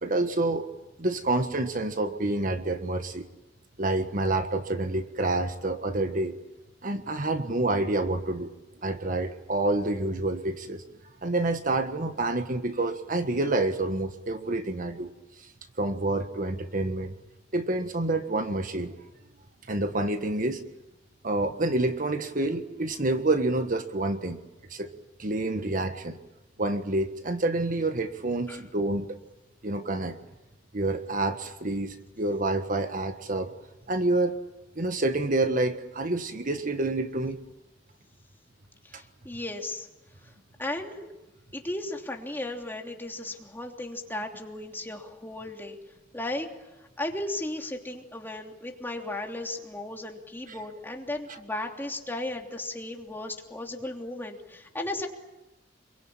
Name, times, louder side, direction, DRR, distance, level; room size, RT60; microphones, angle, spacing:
voice 1, 0.0-0.7 1.0-3.3 3.8-6.3 6.8-8.5 8.8-10.8 11.2-15.1 15.4-15.5 15.8-17.1 17.5-18.9 19.7-20.6 21.2-24.4 24.7-24.9 25.2-26.2 26.6-29.2 29.6-30.2 30.7-33.5 33.9-34.4 34.8-37.4 38.9-39.0 50.5-50.6, right 2 dB, 45° right, 7 dB, 1.5 m, -28 dB
voice 2, 38.8-39.9 40.2-40.3 40.6-41.1 41.5-45.8 46.1-46.5 47.0-55.1, left 1 dB, 10° left, 1 dB, 3.1 m, -35 dB
27.0 x 23.5 x 8.9 m, 0.99 s
head